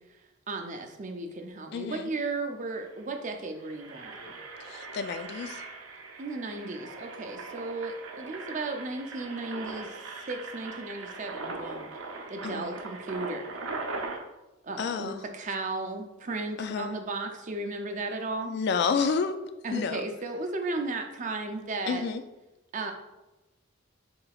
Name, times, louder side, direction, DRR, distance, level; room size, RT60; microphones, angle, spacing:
voice 1, 0.5-4.4 6.2-10.0 10.3-11.9 12.3-13.6 14.6-18.5 19.6-22.0 22.7-22.9, right 3 dB, 40° right, 4 dB, 0.5 m, -35 dB
voice 2, 1.7-2.1 4.6-5.6 12.4-12.8 14.8-15.2 16.6-16.9 18.4-19.4 19.7-20.1 21.9-22.2, left 5 dB, 55° left, 9 dB, 0.3 m, -30 dB
Engine, 2.4-2.5 2.8-3.0 3.5-14.2, right 3 dB, 90° right, 0.7 m, -40 dB
5.7 x 3.8 x 2.3 m, 1.0 s
head